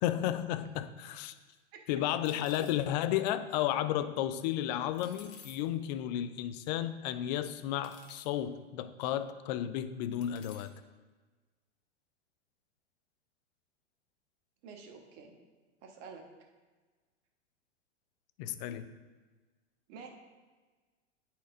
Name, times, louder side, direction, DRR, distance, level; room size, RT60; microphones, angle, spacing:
voice 1, 0.0-1.3 1.9-10.7 18.4-18.9, left 11 dB, 35° left, 12 dB, 0.4 m, -33 dB
sound 1, 1.5-1.6 2.2-2.8 5.0-5.6 6.6-6.7 7.8-8.3 9.1-9.2 10.2-10.7, left 6 dB, 65° left, 1.1 m, -54 dB
voice 2, 14.6-15.4 15.8-16.2 19.9-20.1, right 5 dB, 40° right, 3 dB, 1.3 m, -49 dB
10.5 x 4.3 x 3.7 m, 1.4 s
figure-of-eight pair, 100°, 36 cm